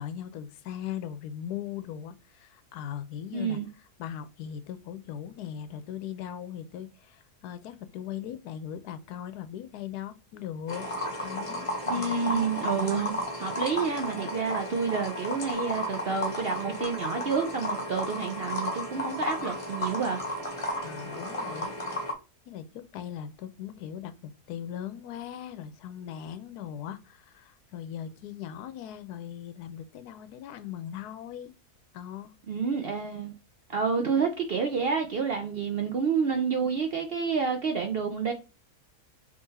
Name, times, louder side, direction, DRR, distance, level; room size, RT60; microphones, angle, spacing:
voice 1, 0.0-3.6 4.0-10.9 11.2-12.2 20.8-21.7 22.5-31.5 31.9-32.3, left 10 dB, 85° left, 1.1 m, -39 dB
voice 2, 3.3-3.7 11.9-20.2 32.5-33.3 33.7-38.3, right 5 dB, 60° right, 0.6 m, -29 dB
sound 1, 10.7-22.1, equal, 20° left, 1.2 m, -33 dB
3.7 x 3.3 x 4.0 m
omnidirectional pair, 1.6 m